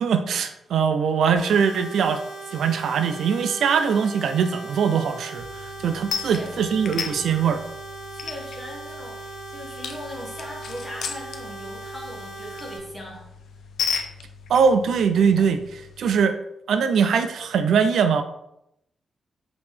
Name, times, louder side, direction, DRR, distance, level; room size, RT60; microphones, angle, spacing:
voice 1, 0.0-2.2 2.5-7.6 14.5-16.4 16.7-18.2, right 6 dB, 80° right, 9 dB, 0.3 m, -22 dB
sound 1, 1.4-12.8, right 3 dB, 40° left, 1.1 m, -39 dB
sound 2, 5.4-16.1, left 6 dB, 75° left, 0.5 m, -35 dB
voice 2, 6.2-6.9 8.1-13.3, left 1 dB, 15° left, -2 dB, 1.3 m, -39 dB
5.2 x 2.9 x 3.2 m, 0.81 s
wide cardioid pair, 130°, 0 cm